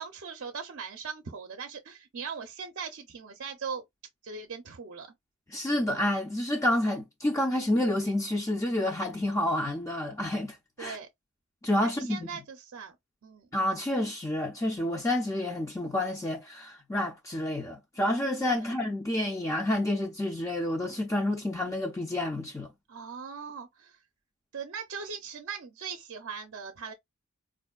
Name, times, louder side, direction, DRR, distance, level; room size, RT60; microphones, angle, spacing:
voice 1, 0.0-3.8 4.2-5.1 10.8-11.1 11.8-13.0 13.2-13.5 18.6-18.7 22.9-24.0 24.5-26.9, right 6 dB, 60° right, 0.5 m, -40 dB
voice 2, 5.5-11.0 11.6-12.3 13.5-22.7, left 1 dB, 15° left, 0.4 m, -29 dB
4.3 x 2.5 x 2.3 m
head